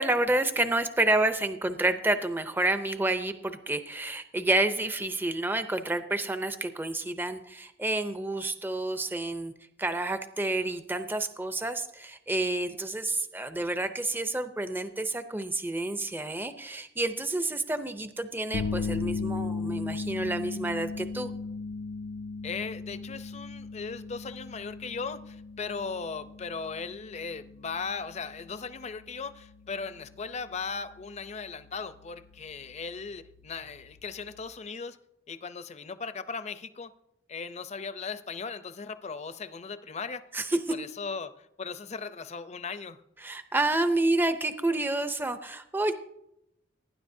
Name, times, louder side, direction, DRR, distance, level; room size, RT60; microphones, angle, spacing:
voice 1, 0.0-9.5 9.8-21.3 40.3-40.6 43.2-45.9, right 2 dB, 10° right, 9 dB, 0.5 m, -29 dB
sound 1, 18.5-34.5, left 4 dB, 85° left, 0.4 m, -38 dB
voice 2, 22.4-35.0 35.3-36.9 37.3-40.2 40.7-43.0, left 5 dB, 35° left, 12 dB, 0.5 m, -38 dB
18.5 x 10.0 x 2.7 m, 0.82 s
head